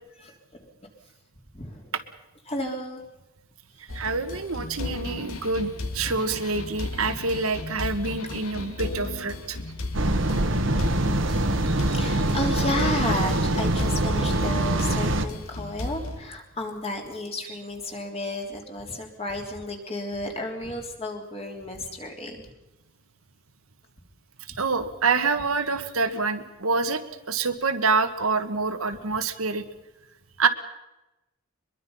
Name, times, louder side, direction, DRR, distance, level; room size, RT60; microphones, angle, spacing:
voice 1, 1.5-1.9 2.5-3.0 10.7-10.9 11.4-22.4, left 1 dB, 30° left, 2 dB, 3.4 m, -32 dB
sound 1, 3.9-16.2, left 2 dB, 80° left, 2.3 m, -35 dB
voice 2, 3.9-9.6 11.4-12.0 24.6-29.6 30.4-30.5, right 4 dB, 85° right, 8 dB, 1.6 m, -27 dB
sound 2, 9.9-15.3, right 1 dB, 60° right, 1.5 m, -24 dB
24.0 x 22.0 x 5.6 m, 0.96 s
head